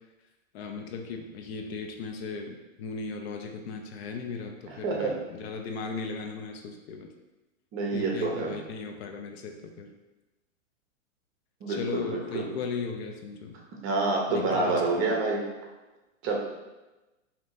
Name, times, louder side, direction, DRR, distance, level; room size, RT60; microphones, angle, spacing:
voice 1, 0.5-7.1 7.9-9.9 11.7-13.6 14.3-14.8, left 4 dB, 55° left, 4 dB, 0.5 m, -37 dB
voice 2, 4.7-5.1 7.7-8.6 11.6-12.5 13.8-15.5 16.2-16.4, right 3 dB, 30° right, -1 dB, 0.8 m, -28 dB
4.9 x 2.8 x 2.6 m, 1.1 s
hypercardioid pair, 125°, 39 cm